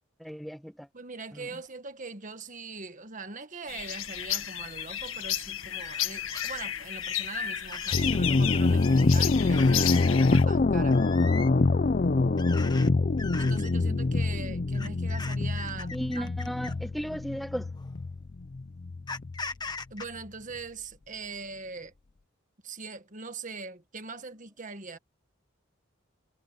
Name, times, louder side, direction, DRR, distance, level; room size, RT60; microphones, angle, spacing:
voice 1, 0.2-0.9 1.3-1.5 15.9-17.7, equal, ahead, 1.2 m, -35 dB
voice 2, 0.9-11.0 13.4-16.5 19.9-21.9 22.6-25.0, right 4 dB, 40° right, 1.6 m, -41 dB
sound 1, 3.7-10.4, left 11 dB, 80° left, 1.6 m, -33 dB
sound 2, 4.3-4.5 4.9-5.2 5.8-6.0 6.3-6.6 7.0-7.3 7.7-8.1 8.6-9.1 9.5-10.1 10.9-11.5 12.4-12.9 13.2-13.7 14.7-16.9 17.8-17.9 19.1-20.0, left 4 dB, 20° left, 1.3 m, -40 dB
sound 3, 7.9-19.4, left 3 dB, 40° left, 0.5 m, -25 dB
head